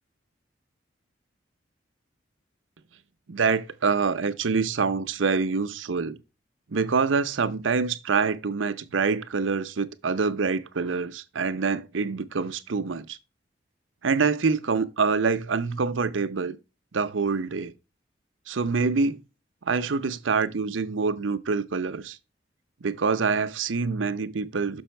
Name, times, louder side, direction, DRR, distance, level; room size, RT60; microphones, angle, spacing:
voice 1, 3.3-6.2 6.7-13.2 14.0-16.6 16.9-17.7 18.5-19.2 19.6-22.2 22.8-24.8, right 4 dB, 90° right, 0.7 m, -26 dB
6.2 x 5.5 x 4.4 m
head